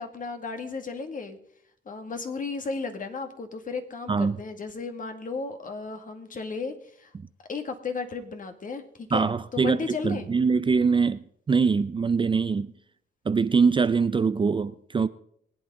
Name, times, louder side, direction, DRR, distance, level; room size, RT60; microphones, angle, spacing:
voice 1, 0.0-1.4 1.9-7.1 7.5-10.3, left 4 dB, 40° left, 2.0 m, -34 dB
voice 2, 9.1-12.7 13.3-15.1, right 5 dB, 25° right, 0.5 m, -23 dB
22.5 x 8.7 x 3.7 m
cardioid pair, 90°, 20 cm